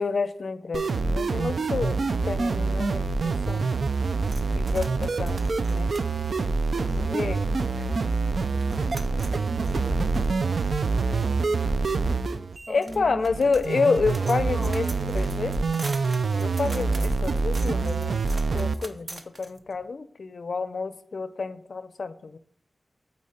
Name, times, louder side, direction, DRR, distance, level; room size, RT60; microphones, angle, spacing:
voice 1, 0.0-3.7 4.5-5.4 5.7-5.9 6.9-7.5 12.7-14.8 15.1-15.5 16.4-18.1 18.5-22.4, left 4 dB, 70° left, 0.5 m, -29 dB
sound 1, 0.7-18.7, right 4 dB, 75° right, 0.4 m, -26 dB
sound 2, 4.2-7.4 7.9-8.0 8.2-19.9, right 2 dB, 45° right, 0.7 m, -45 dB
voice 2, 6.7-11.5 12.3-13.5 14.2-15.7, right 1 dB, 10° right, 1.3 m, -43 dB
8.5 x 4.1 x 4.2 m
wide cardioid pair, 90°, 0 cm